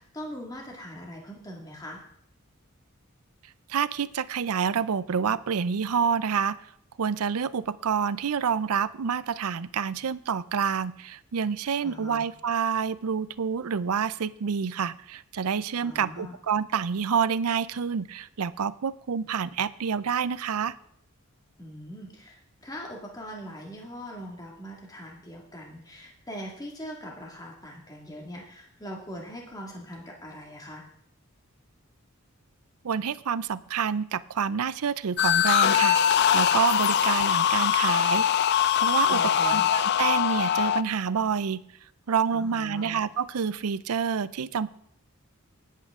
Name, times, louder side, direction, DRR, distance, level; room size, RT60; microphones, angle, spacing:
voice 1, 0.0-2.0 11.8-12.2 15.8-16.4 21.6-30.8 39.1-39.7 42.3-43.0, equal, 15° left, 0 dB, 2.0 m, -41 dB
voice 2, 3.7-6.6 7.0-20.7 32.8-38.3 38.8-41.6 42.1-44.7, right 6 dB, 80° right, 17 dB, 0.5 m, -28 dB
sound 1, 35.2-40.8, left 9 dB, 50° left, 0.4 m, -22 dB
19.5 x 8.5 x 3.6 m, 0.68 s
head